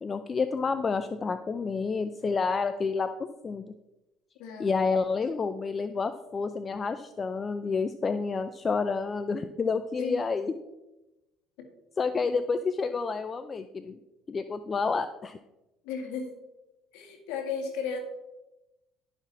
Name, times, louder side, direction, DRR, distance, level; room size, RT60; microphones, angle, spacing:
voice 1, 0.0-3.1 3.4-3.7 4.6-10.5 12.0-14.0 14.3-15.4, left 4 dB, 30° left, 10 dB, 0.5 m, -29 dB
voice 2, 4.4-4.8 10.0-10.3 11.6-11.7 15.8-16.3 16.9-18.0, left 5 dB, 80° left, 3 dB, 2.0 m, -34 dB
11.5 x 6.2 x 4.1 m, 1.0 s
supercardioid pair, 95°, 0 cm